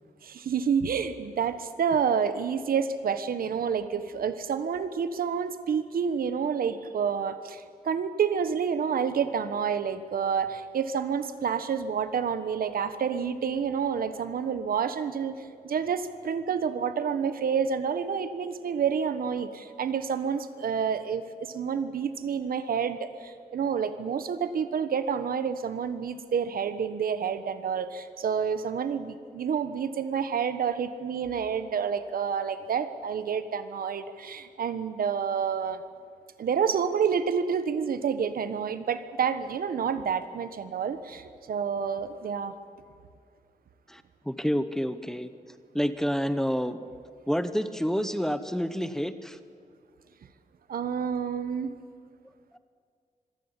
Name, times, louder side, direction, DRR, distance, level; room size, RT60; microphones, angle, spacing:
voice 1, 0.2-35.8 36.4-42.5 50.7-51.7, right 7 dB, 80° right, 12 dB, 1.3 m, -29 dB
voice 2, 43.9-45.3 45.7-46.8 47.3-49.4, equal, 5° left, 11 dB, 0.8 m, -28 dB
25.5 x 16.0 x 9.9 m, 2.1 s
wide cardioid pair, 170°, 15 cm